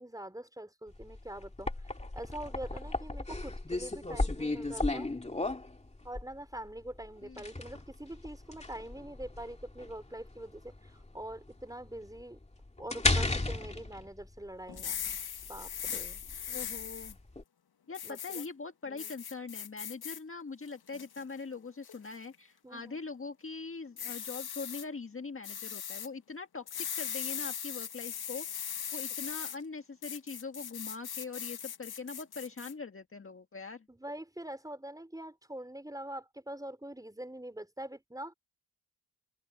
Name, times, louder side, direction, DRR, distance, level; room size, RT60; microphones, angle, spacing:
voice 1, 0.0-1.7 2.1-5.1 6.0-12.4 12.8-15.0 15.5-16.2 18.0-18.4 18.9-19.1 22.6-23.0 33.9-38.3, right 1 dB, 10° right, 5.0 m, -44 dB
sound 1, 0.9-17.4, left 2 dB, 15° left, 2.2 m, -35 dB
sound 2, 14.7-17.1 17.9-18.5 19.0-20.2 20.7-21.2 21.8-22.1 24.0-24.8 25.4-26.1 26.7-29.6 30.0-32.7, left 8 dB, 70° left, 1.6 m, -39 dB
voice 2, 16.5-17.2 17.9-33.9, left 4 dB, 35° left, 1.7 m, -42 dB
open air
cardioid pair, 70°, 39 cm